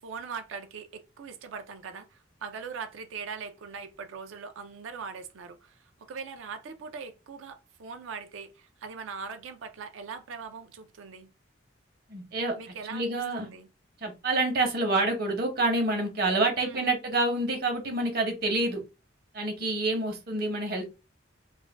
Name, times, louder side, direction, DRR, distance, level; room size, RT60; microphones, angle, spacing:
voice 1, 0.0-5.8 6.1-11.3 12.6-13.7 16.6-16.9, right 5 dB, 75° right, 0.4 m, -41 dB
voice 2, 12.1-13.5 14.0-18.8 19.3-20.9, right 2 dB, 50° right, 0.8 m, -28 dB
2.4 x 2.2 x 3.3 m
head